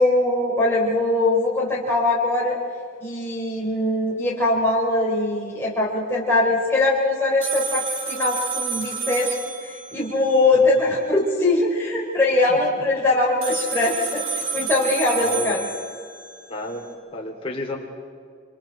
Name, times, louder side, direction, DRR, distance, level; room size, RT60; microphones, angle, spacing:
voice 1, 0.0-2.6 3.0-15.6, left 2 dB, 10° left, -5 dB, 3.4 m, -21 dB
sound 1, 7.4-10.8 13.4-16.8, right 5 dB, 70° right, 4.6 m, -30 dB
voice 2, 12.5-12.8 15.1-15.8 16.5-16.9 17.1-17.8, left 1 dB, 25° left, -1 dB, 3.4 m, -32 dB
27.0 x 25.0 x 4.5 m, 2.1 s
head